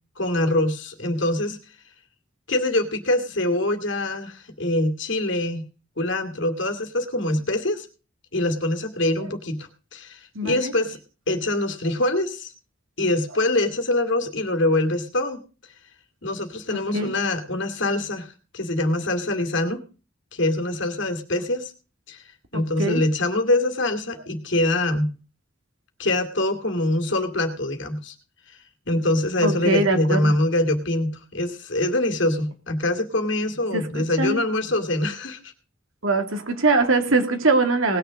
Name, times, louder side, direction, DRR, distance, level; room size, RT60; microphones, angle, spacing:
voice 1, 0.2-1.6 2.5-5.6 6.0-7.9 8.3-11.0 11.3-12.5 13.0-15.4 16.2-19.8 20.3-21.7 22.1-22.2 22.5-25.1 26.0-28.1 28.9-35.5, left 1 dB, 65° left, 6 dB, 2.4 m, -24 dB
voice 2, 10.3-10.7 16.7-17.1 22.5-23.0 29.4-30.3 33.7-34.4 36.0-38.0, right 3 dB, 80° right, 6 dB, 2.4 m, -22 dB
19.0 x 6.8 x 6.3 m, 0.35 s
head